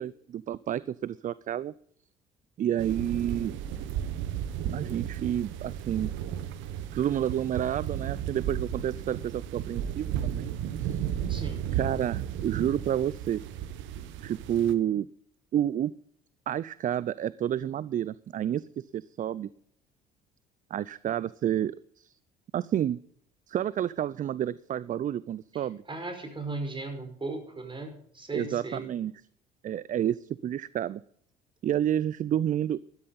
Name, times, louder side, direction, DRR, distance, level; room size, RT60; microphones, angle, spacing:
voice 1, 0.0-1.7 2.6-3.6 4.6-6.1 6.9-11.0 11.7-13.4 14.2-15.1 15.5-15.9 16.5-19.5 20.7-22.1 22.5-23.0 23.5-25.8 28.3-29.1 29.6-31.0 31.6-32.8, right 10 dB, 40° right, 20 dB, 0.5 m, -30 dB
sound 1, 2.8-14.7, right 10 dB, 65° right, 1.2 m, -34 dB
voice 2, 11.3-11.7 25.5-28.9, right 2 dB, 25° right, 6 dB, 5.3 m, -37 dB
14.0 x 13.0 x 4.1 m, 0.64 s
hypercardioid pair, 60°, 21 cm